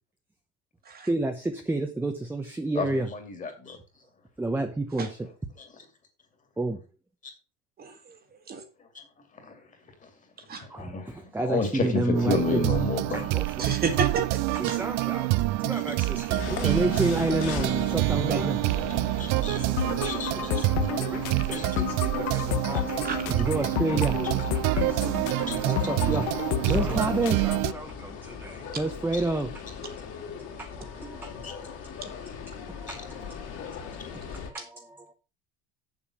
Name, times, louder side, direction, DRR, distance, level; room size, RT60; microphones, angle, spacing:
voice 1, 1.1-3.1 4.4-5.3 6.6-6.8 10.7-12.6 13.1-13.8 14.5-18.8 19.5-24.4 24.7-26.3 26.6-29.6 30.4-31.7 32.0-32.1 32.6-35.1, right 2 dB, 5° right, 0.9 m, -31 dB
voice 2, 2.8-3.8 9.4-9.6 10.6-13.3 19.2-19.6 20.0-20.3 21.5-21.6 25.5-25.6 31.4-31.5 32.9-33.0, left 3 dB, 25° left, 2.5 m, -30 dB
sound 1, 12.1-27.7, right 20 dB, 55° right, 0.5 m, -27 dB
voice 3, 13.6-14.4 18.2-18.4 23.0-23.3, right 4 dB, 30° right, 1.7 m, -30 dB
sound 2, 16.3-34.5, left 6 dB, 45° left, 3.0 m, -39 dB
sound 3, 19.8-27.8, left 14 dB, 65° left, 0.8 m, -32 dB
7.3 x 7.2 x 6.1 m
cardioid pair, 150°, 33 cm